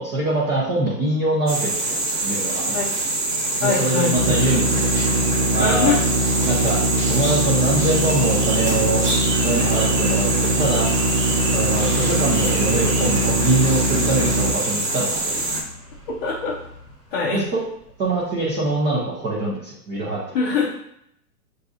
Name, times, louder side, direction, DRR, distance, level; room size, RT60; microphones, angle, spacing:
voice 1, 0.0-2.8 3.6-4.9 5.5-6.0 6.4-6.8 7.1-9.0 9.4-10.9 11.5-15.3 17.3-17.6 18.0-20.4, right 2 dB, 15° right, -7 dB, 0.6 m, -24 dB
sound 1, 1.5-15.6, right 2 dB, 70° right, 1.5 m, -24 dB
voice 2, 3.6-4.4 5.6-6.0 16.2-16.7 17.1-17.4 20.3-20.7, left 5 dB, 30° left, -6 dB, 0.6 m, -23 dB
sound 2, 4.1-14.5, right 1 dB, 45° right, 0.9 m, -22 dB
sound 3, 4.4-18.3 18.6-18.7, right 1 dB, ahead, 0.9 m, -40 dB
6.4 x 2.6 x 2.4 m, 0.72 s
hypercardioid pair, 120°, 49 cm